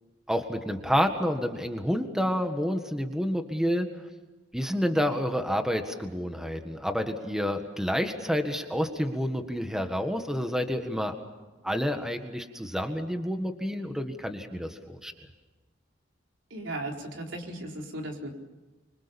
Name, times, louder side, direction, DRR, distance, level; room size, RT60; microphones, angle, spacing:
voice 1, 0.3-3.9 4.5-11.1 11.6-15.1, equal, 5° right, 6 dB, 1.7 m, -29 dB
voice 2, 16.5-18.3, right 1 dB, 80° right, 1 dB, 4.3 m, -36 dB
25.5 x 25.0 x 7.2 m, 1.2 s
head